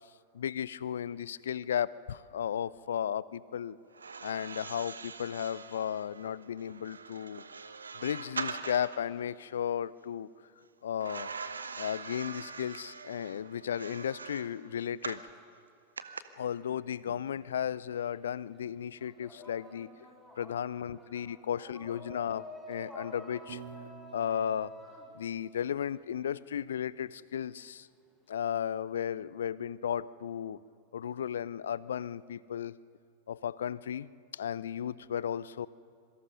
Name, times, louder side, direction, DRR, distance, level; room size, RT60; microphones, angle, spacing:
voice 1, 0.3-3.8 4.2-7.4 8.0-10.3 10.8-11.3 11.8-15.2 16.4-19.9 20.4-23.6 24.1-24.7 25.1-27.9 28.3-30.6 30.9-32.7 33.3-35.7, left 9 dB, 65° left, 21 dB, 0.5 m, -35 dB
sound 1, 3.9-9.1 11.0-15.3 16.0-16.2, right 5 dB, 75° right, 0.9 m, -42 dB
sound 2, 17.0-18.2 18.5-26.3, equal, ahead, 5.7 m, -50 dB
Piano, 23.5-25.7, right 6 dB, 55° right, 2.1 m, -50 dB
26.0 x 23.5 x 5.4 m, 2.4 s
figure-of-eight pair, 90°, 0 cm